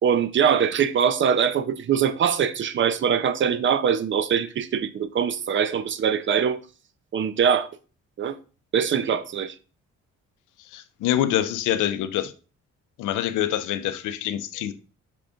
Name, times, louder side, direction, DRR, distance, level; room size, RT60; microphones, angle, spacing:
voice 1, 0.0-6.6 7.1-7.7 8.2-8.4 8.7-9.5, right 7 dB, 40° right, 0.5 m, -22 dB
voice 2, 10.7-12.3 13.0-14.7, left 11 dB, 85° left, 0.5 m, -25 dB
5.9 x 2.5 x 3.5 m
cardioid pair, 90°, 30 cm